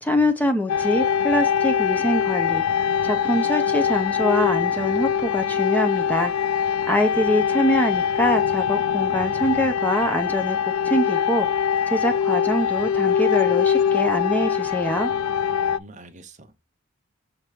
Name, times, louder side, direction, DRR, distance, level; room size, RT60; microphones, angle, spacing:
voice 1, 0.0-2.6 3.0-6.3 6.9-10.6 10.8-11.5 11.9-15.1, left 1 dB, 10° left, 0.6 m, -24 dB
sound 1, 0.7-15.8, left 8 dB, 90° left, 0.4 m, -23 dB
voice 2, 15.5-16.5, right 2 dB, 35° right, 0.8 m, -46 dB
6.4 x 3.0 x 4.9 m
head